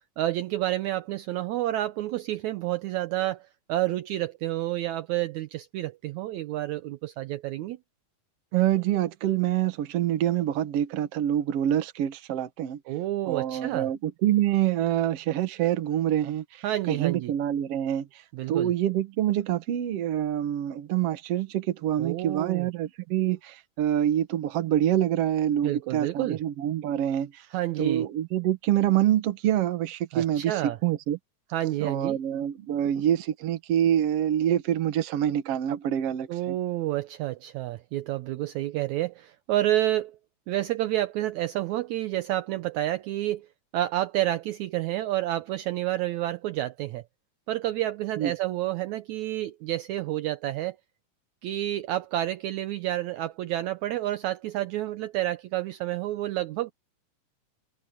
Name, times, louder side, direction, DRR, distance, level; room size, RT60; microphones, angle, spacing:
voice 1, 0.0-7.8 12.9-13.9 16.6-17.3 18.3-18.7 22.0-22.7 25.6-26.4 27.5-28.1 30.1-30.8 31.5-32.2 36.3-40.2 40.5-43.5 43.7-47.0 47.5-50.8 51.4-56.7, right 14 dB, 75° right, 2.0 m, -29 dB
voice 2, 8.5-12.8 13.3-18.1 18.5-27.5 27.8-31.2 31.8-36.6 48.2-48.3, right 11 dB, 60° right, 1.9 m, -26 dB
omnidirectional pair, 3.6 m